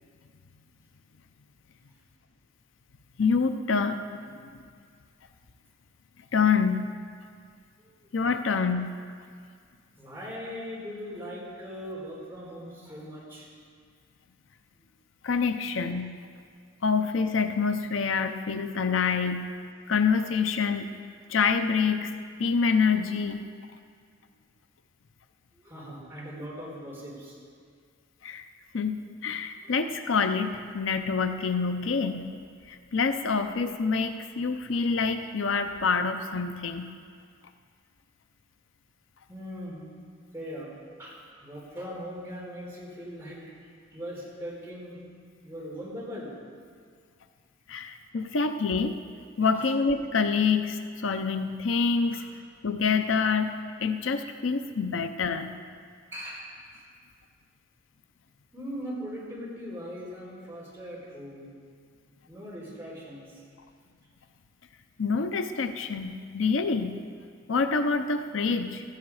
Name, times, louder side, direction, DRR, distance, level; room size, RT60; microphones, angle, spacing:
voice 1, 3.2-4.0 4.3-4.4 6.3-6.9 8.1-8.9 15.2-16.1 16.8-19.5 19.9-20.9 21.3-22.1 22.4-23.4 28.2-28.4 28.7-32.3 32.7-36.9 47.7-49.0 49.4-52.2 52.6-55.5 65.0-67.0 67.5-68.8, left 5 dB, 75° left, 8 dB, 0.6 m, -26 dB
voice 2, 7.8-8.3 10.0-13.5 24.1-24.2 25.5-27.4 29.5-30.0 39.3-39.9 40.3-45.0 45.4-46.3 49.4-49.7 52.1-52.3 56.1-56.8 58.5-61.5 62.3-63.4, equal, 15° right, -6 dB, 4.2 m, -40 dB
16.5 x 13.0 x 4.9 m, 2.1 s
head